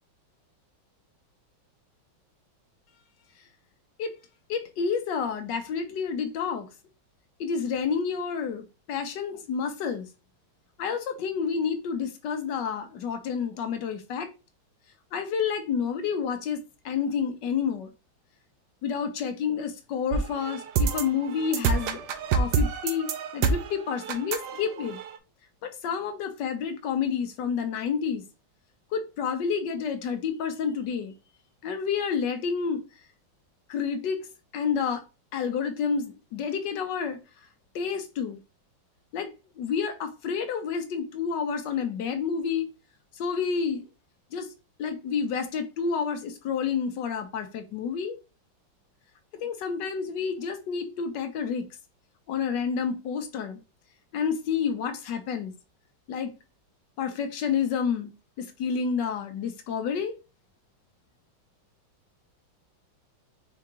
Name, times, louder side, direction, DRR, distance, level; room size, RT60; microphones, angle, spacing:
voice 1, 4.5-6.7 7.4-10.1 10.8-14.3 15.1-17.9 18.8-22.0 22.3-25.0 25.6-28.2 28.9-31.1 31.6-32.8 33.7-34.2 34.5-35.0 35.3-37.2 37.7-38.4 39.1-39.3 39.6-42.7 43.1-43.8 44.3-44.5 44.8-48.2 49.3-51.7 52.3-53.6 54.1-55.5 56.1-56.3 57.0-58.1 58.4-60.1, left 6 dB, 70° left, 1.2 m, -29 dB
sound 1, 20.1-25.2, right 5 dB, 70° right, 1.1 m, -27 dB
4.7 x 2.8 x 3.6 m
omnidirectional pair, 2.2 m